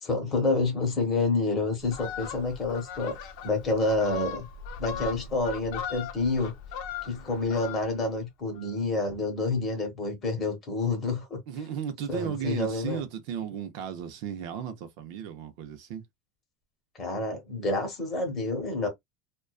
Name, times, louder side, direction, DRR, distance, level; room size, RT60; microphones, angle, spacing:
voice 1, 0.0-3.1 3.4-4.5 4.8-6.5 7.0-11.4 12.1-13.0 16.9-18.9, left 3 dB, 25° left, 1.0 m, -28 dB
Fowl, 1.8-8.1 8.5-8.7, left 7 dB, 60° left, 0.5 m, -39 dB
voice 2, 11.5-16.0, right 8 dB, 55° right, 0.5 m, -35 dB
2.4 x 2.2 x 2.3 m
supercardioid pair, 165°, 0 cm